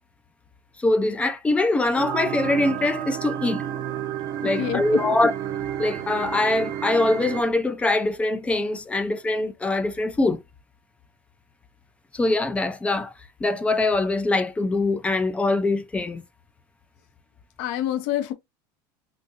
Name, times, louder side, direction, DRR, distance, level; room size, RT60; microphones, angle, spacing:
voice 1, 0.8-3.6 4.4-5.3 5.8-10.4 12.1-13.1 13.4-16.2, left 2 dB, 10° left, 0.3 m, -23 dB
sound 1, 2.0-7.4, right 10 dB, 35° right, 0.6 m, -31 dB
voice 2, 4.4-5.1 17.6-18.3, left 11 dB, 60° left, 0.6 m, -27 dB
3.8 x 2.6 x 2.4 m
supercardioid pair, 145°, 11 cm